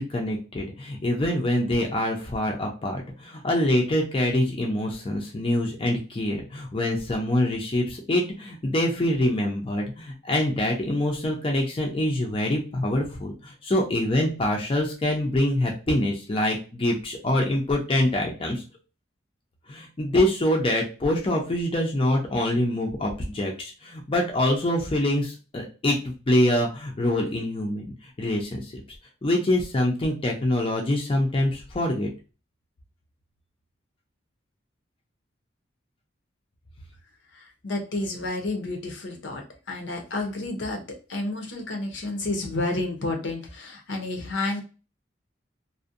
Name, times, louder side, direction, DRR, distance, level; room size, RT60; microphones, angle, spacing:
voice 1, 0.0-18.6 19.7-26.0 26.3-27.9 28.2-28.7 29.2-32.1, left 1 dB, 30° left, 0 dB, 0.4 m, -25 dB
voice 2, 37.3-40.8 41.1-44.6, left 2 dB, 65° left, 3 dB, 0.6 m, -30 dB
2.5 x 2.0 x 2.5 m, 0.33 s
head